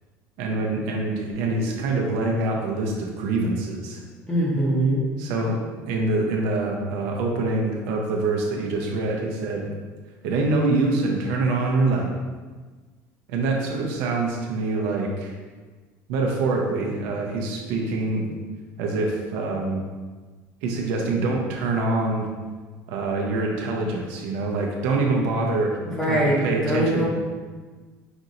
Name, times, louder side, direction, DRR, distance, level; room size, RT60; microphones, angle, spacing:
voice 1, 0.4-4.0 5.2-5.6 5.9-9.7 10.2-12.1 13.3-15.3 16.1-18.3 18.8-19.8 20.6-22.3 22.9-27.0, right 3 dB, 80° right, 0 dB, 0.7 m, -25 dB
voice 2, 4.3-5.0 25.8-27.0, right 1 dB, 10° left, -6 dB, 0.8 m, -22 dB
5.2 x 2.8 x 2.5 m, 1.4 s
cardioid pair, 170°, 6 cm